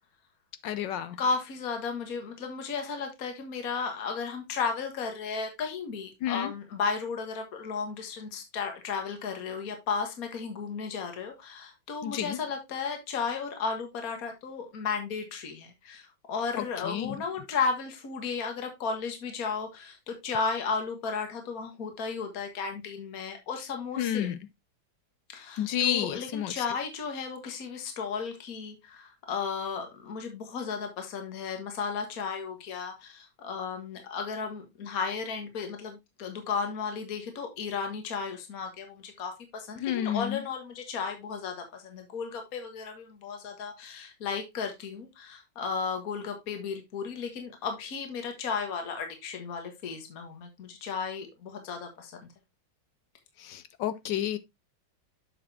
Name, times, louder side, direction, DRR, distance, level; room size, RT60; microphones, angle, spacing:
voice 1, 0.6-1.2 6.2-6.5 12.0-12.4 16.5-17.2 24.0-24.4 25.6-26.6 39.8-40.4 53.4-54.4, left 11 dB, 70° left, 1.2 m, -30 dB
voice 2, 1.2-24.3 25.3-52.2, left 5 dB, 50° left, 1.8 m, -34 dB
7.4 x 6.7 x 2.7 m
omnidirectional pair, 2.2 m